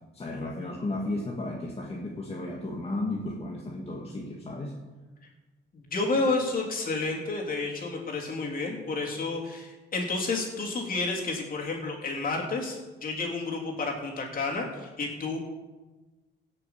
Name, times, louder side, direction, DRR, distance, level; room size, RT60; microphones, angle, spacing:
voice 1, 0.1-4.8, left 2 dB, 30° left, -1 dB, 1.9 m, -34 dB
voice 2, 5.7-15.4, left 3 dB, 45° left, -1 dB, 3.6 m, -30 dB
17.5 x 6.7 x 5.8 m, 1.2 s
cardioid pair, 90°, 20 cm